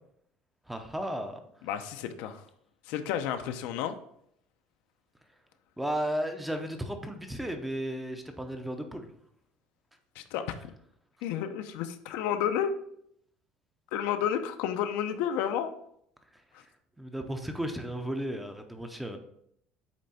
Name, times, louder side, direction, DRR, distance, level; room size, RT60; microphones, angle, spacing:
voice 1, 0.7-1.4 5.8-9.1 17.0-19.2, equal, 5° right, 6 dB, 0.6 m, -34 dB
voice 2, 1.6-2.4 2.9-4.0 10.2-10.4 11.2-12.8 13.9-15.7, left 9 dB, 90° left, 8 dB, 0.7 m, -31 dB
8.3 x 3.4 x 4.2 m, 0.71 s
cardioid pair, 170°, 2 cm